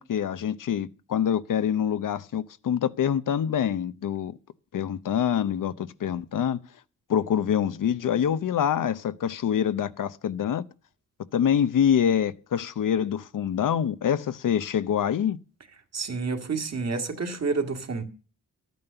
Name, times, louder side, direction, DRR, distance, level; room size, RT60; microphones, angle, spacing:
voice 1, 0.0-4.4 4.7-6.6 7.1-10.6 11.3-15.4, left 9 dB, 80° left, 0.7 m, -25 dB
voice 2, 15.9-18.0, right 4 dB, 55° right, 1.9 m, -29 dB
12.5 x 9.4 x 6.8 m
wide cardioid pair, 130°, 31 cm